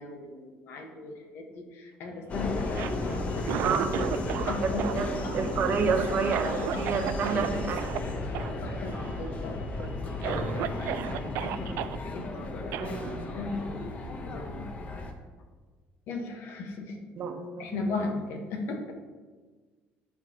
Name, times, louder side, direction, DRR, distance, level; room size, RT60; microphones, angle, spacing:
voice 1, 0.0-3.8 4.5-4.9 5.2-5.4 6.4-7.7 8.4-13.1 13.3-14.7 16.1-17.0 17.6-18.9, left 3 dB, 65° left, 3 dB, 1.3 m, -38 dB
Subway metro underground, 2.3-15.1, left 2 dB, 30° left, 0.8 m, -34 dB
Cough, 2.6-4.5 4.8-7.5 7.8-8.0 8.3-8.5 8.8-9.3 9.8-9.9 10.2-12.0 12.7-12.9, right 12 dB, 70° right, 0.4 m, -34 dB
voice 2, 3.6-5.1 5.3-7.8 12.8-13.2 17.2-17.9, right 5 dB, 45° right, 5 dB, 1.0 m, -30 dB
14.0 x 4.7 x 2.9 m, 1.4 s
cardioid pair, 130°, 4 cm